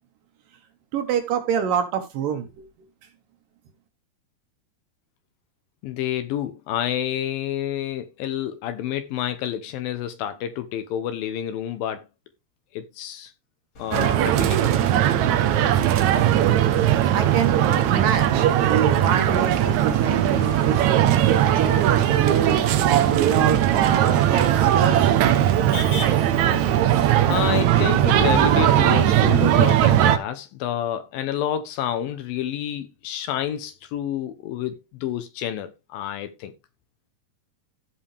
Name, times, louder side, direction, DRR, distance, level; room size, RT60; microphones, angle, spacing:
voice 1, 0.9-2.6 17.1-17.6 17.9-25.2, right 8 dB, 65° right, 2.7 m, -26 dB
voice 2, 5.8-12.1 12.7-13.3 13.8-14.9 27.3-36.5, left 10 dB, 75° left, 2.4 m, -29 dB
Motor vehicle (road), 13.7-29.4, left 2 dB, 40° left, 2.3 m, -40 dB
sound 1, 13.9-30.2, right 11 dB, 85° right, 1.6 m, -19 dB
16.0 x 5.4 x 3.3 m
omnidirectional pair, 4.5 m